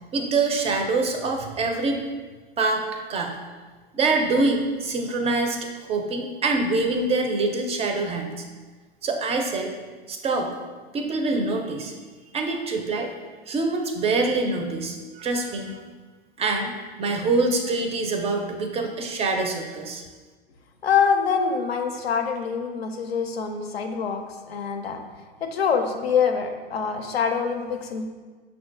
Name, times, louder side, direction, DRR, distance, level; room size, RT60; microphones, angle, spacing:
voice 1, 0.1-2.0 2.6-2.8 3.1-3.3 3.9-5.6 5.9-8.3 9.0-9.7 10.1-10.6 10.9-11.9 12.3-13.1 13.5-15.8 16.4-20.0, right 3 dB, 20° right, 4 dB, 0.4 m, -25 dB
voice 2, 20.8-25.0 25.4-28.1, left 6 dB, 90° left, 5 dB, 0.5 m, -25 dB
5.7 x 2.2 x 2.6 m, 1.4 s
hypercardioid pair, 90°, 30 cm